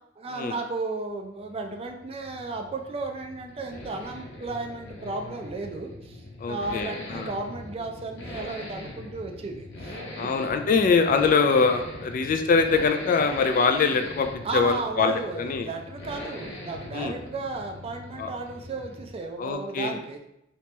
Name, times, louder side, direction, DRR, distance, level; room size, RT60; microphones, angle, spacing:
voice 1, 0.2-10.4 14.4-20.2, right 3 dB, 35° right, 3 dB, 0.4 m, -34 dB
Accelerating revving vroom, 1.1-19.3 19.5-19.6, left 1 dB, 80° left, 0.9 m, -41 dB
voice 2, 6.4-7.3 10.2-15.7 16.9-17.1 18.2-18.3 19.4-19.9, left 4 dB, 45° left, 7 dB, 0.3 m, -23 dB
3.0 x 2.9 x 3.3 m, 0.82 s
head